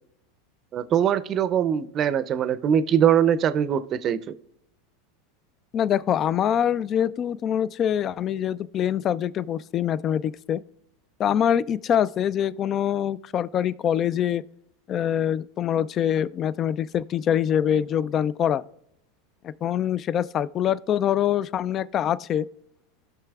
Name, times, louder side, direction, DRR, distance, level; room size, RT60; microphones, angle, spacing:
voice 1, 0.7-4.2, right 9 dB, 40° right, 0.5 m, -22 dB
voice 2, 5.7-10.6 11.2-14.4 14.9-18.6 19.4-22.5, left 9 dB, 40° left, 0.3 m, -24 dB
16.5 x 5.9 x 2.4 m
hypercardioid pair, 95°, 0 cm